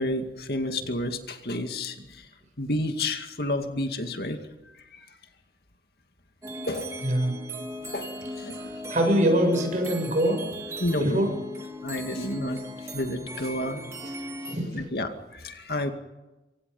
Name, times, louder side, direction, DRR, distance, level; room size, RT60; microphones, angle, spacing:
voice 1, 0.0-2.3 2.6-4.4 4.7-5.1 6.7-6.9 7.9-8.1 8.4-8.6 8.8-8.9 10.8-11.3 11.8-12.6 12.9-14.1 14.7-15.9, left 1 dB, 60° left, 6 dB, 2.3 m, -30 dB
sound 1, 6.4-14.6, equal, 15° right, 2.8 m, -38 dB
voice 2, 7.0-7.3 8.6-10.4 10.9-11.3 14.5-14.9, equal, 45° right, 4 dB, 7.6 m, -24 dB
27.0 x 25.0 x 5.6 m, 1.0 s
head